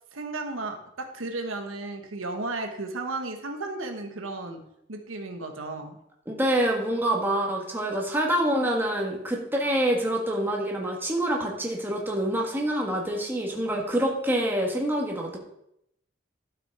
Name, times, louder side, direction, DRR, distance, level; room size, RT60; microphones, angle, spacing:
voice 1, 0.1-6.0, right 2 dB, 90° right, 5 dB, 1.3 m, -34 dB
voice 2, 6.3-15.4, right 1 dB, 10° right, -1 dB, 1.7 m, -26 dB
12.0 x 6.1 x 4.8 m, 0.76 s
head